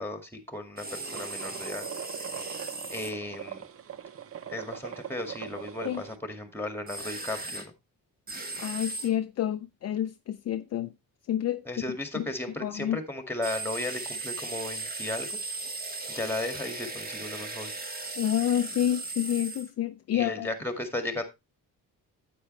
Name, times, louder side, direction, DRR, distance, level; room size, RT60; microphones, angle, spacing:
voice 1, 0.0-1.9 2.2-2.3 2.9-3.6 4.5-7.7 11.7-15.4 16.1-17.7 20.1-21.2, left 2 dB, 5° left, 2.0 m, -35 dB
sound 1, 0.8-3.1 6.9-7.7 8.3-9.1 13.4-19.7, right 3 dB, 25° right, 1.5 m, -37 dB
sound 2, 1.0-6.2, right 9 dB, 40° right, 0.7 m, -41 dB
voice 2, 8.3-10.9 11.3-11.6 12.1-12.3 12.6-13.0 18.2-20.5, left 11 dB, 50° left, 0.5 m, -29 dB
9.9 x 8.5 x 3.2 m
cardioid pair, 120°, 34 cm